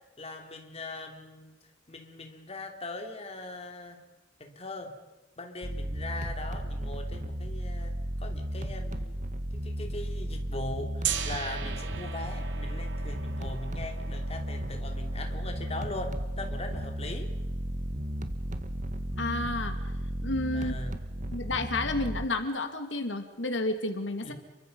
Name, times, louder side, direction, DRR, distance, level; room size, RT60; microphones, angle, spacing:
voice 1, 0.2-1.5 1.9-4.0 4.4-4.9 5.4-9.2 9.5-17.3 20.5-21.0 24.2-24.3, left 2 dB, 35° left, 4 dB, 3.2 m, -40 dB
sound 1, 5.6-22.3, right 1 dB, 45° right, 1.6 m, -34 dB
Gong, 11.0-16.9, right 8 dB, 80° right, 2.4 m, -39 dB
voice 2, 19.2-19.7 20.2-20.7 21.3-24.3, left 2 dB, 90° left, 7 dB, 2.4 m, -31 dB
30.0 x 23.5 x 5.5 m, 1.1 s
head